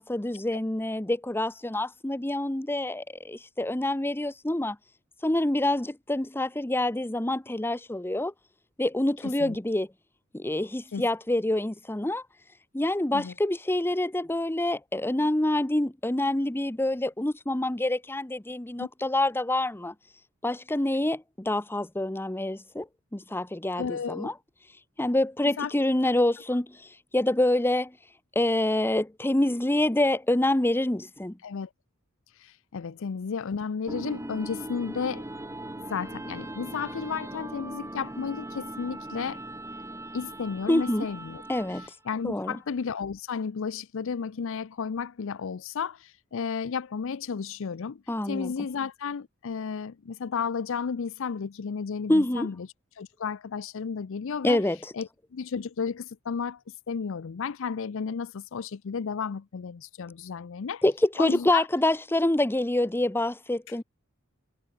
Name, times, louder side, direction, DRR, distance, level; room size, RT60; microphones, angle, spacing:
voice 1, 0.0-4.8 5.2-8.3 8.8-9.9 10.3-12.2 12.7-19.9 20.4-22.9 23.1-24.3 25.0-26.9 27.1-27.9 28.3-31.4 40.7-41.1 41.5-41.9 42.2-42.6 48.1-48.5 52.1-52.5 54.4-54.8 60.8-63.8, left 1 dB, 10° left, 0.8 m, -26 dB
voice 2, 9.2-9.6 10.9-11.0 13.1-13.3 18.8-18.9 23.8-24.3 25.6-25.7 31.4-31.7 32.4-35.2 35.9-39.4 40.1-41.4 42.1-52.7 53.0-54.6 54.9-56.6 56.9-60.8 61.2-61.7, left 6 dB, 65° left, 0.5 m, -33 dB
sound 1, 33.9-42.1, right 1 dB, 15° right, 1.9 m, -39 dB
head